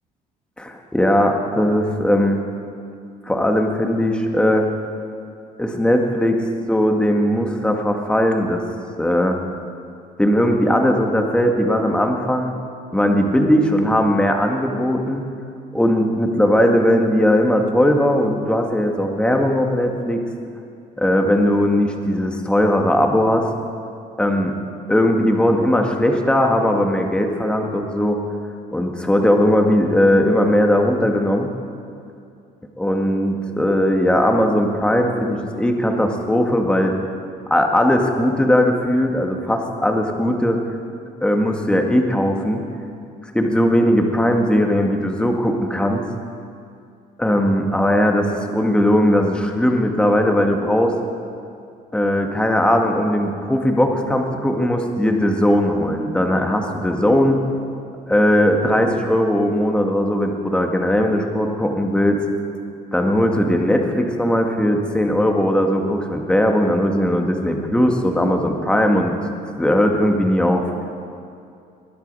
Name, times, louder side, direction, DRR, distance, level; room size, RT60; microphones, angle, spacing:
voice 1, 0.6-2.4 3.2-4.7 5.6-8.6 9.0-9.4 10.2-12.5 12.9-15.3 15.7-20.2 21.0-23.5 24.2-24.5 24.9-28.2 28.7-31.5 32.8-36.9 37.5-40.6 41.2-42.6 43.3-46.0 47.2-51.0 51.9-57.4 58.1-62.2 62.9-69.2 69.6-70.7, equal, 5° left, 3 dB, 1.8 m, -18 dB
21.5 x 11.5 x 5.5 m, 2.5 s
cardioid pair, 110°, 17 cm